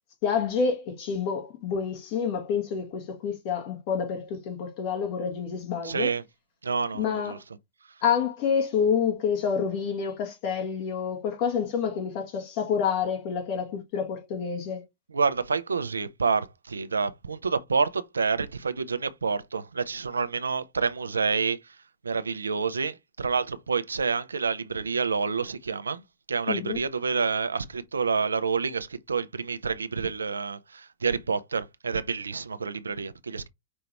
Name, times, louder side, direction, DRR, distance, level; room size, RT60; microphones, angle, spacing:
voice 1, 0.2-6.1 6.9-7.4 8.0-14.8 26.5-26.8, left 6 dB, 50° left, 1.8 m, -28 dB
voice 2, 5.8-6.2 6.6-7.4 15.1-21.7 22.0-26.0 26.3-33.5, right 5 dB, 85° right, 0.5 m, -28 dB
5.3 x 2.8 x 3.4 m
hypercardioid pair, 105°, 0 cm